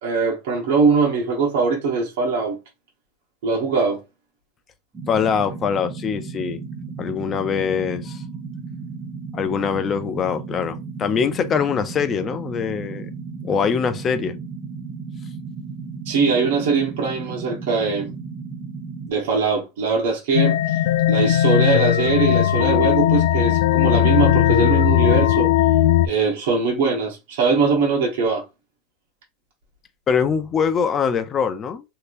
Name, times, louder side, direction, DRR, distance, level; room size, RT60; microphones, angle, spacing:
voice 1, 0.0-2.6 3.4-4.0 16.0-18.1 19.1-20.8 21.1-25.5 26.0-28.4, right 4 dB, 75° right, 1.2 m, -21 dB
sound 1, 4.9-19.1, right 4 dB, 20° right, 0.8 m, -34 dB
voice 2, 5.1-6.6 7.0-8.2 9.3-13.1 13.4-14.4 30.1-31.8, left 6 dB, 25° left, 0.5 m, -23 dB
sound 2, 20.3-26.1, left 12 dB, 80° left, 0.3 m, -17 dB
3.3 x 2.8 x 2.6 m
supercardioid pair, 135°, 0 cm